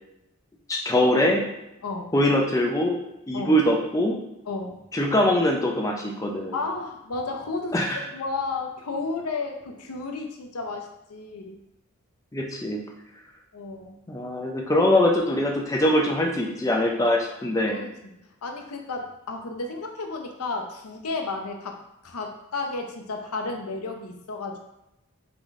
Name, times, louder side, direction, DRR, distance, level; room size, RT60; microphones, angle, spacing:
voice 1, 0.7-1.4 2.1-3.0 3.3-4.2 4.9-6.6 7.7-8.0 12.3-12.8 14.1-17.8, left 1 dB, 15° left, 0 dB, 0.4 m, -22 dB
voice 2, 1.8-2.1 3.3-3.6 4.5-4.9 6.5-7.8 8.1-11.6 13.5-13.9 17.0-17.1 17.5-17.9 18.4-21.8 22.0-24.6, left 3 dB, 85° left, 3 dB, 0.7 m, -32 dB
3.8 x 3.7 x 3.5 m, 0.89 s
head